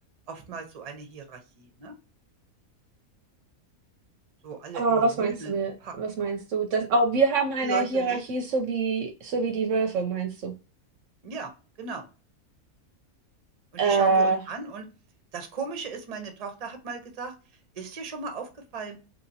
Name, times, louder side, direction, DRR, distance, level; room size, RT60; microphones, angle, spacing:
voice 1, 0.3-1.9 4.4-6.0 7.6-8.2 11.2-11.5 11.8-12.1 13.7-14.9 15.3-17.3 17.7-19.0, right 4 dB, 40° right, 0.6 m, -37 dB
voice 2, 4.7-10.5 13.8-14.4, right 4 dB, 70° right, 0.8 m, -25 dB
3.0 x 2.8 x 2.6 m
omnidirectional pair, 1.5 m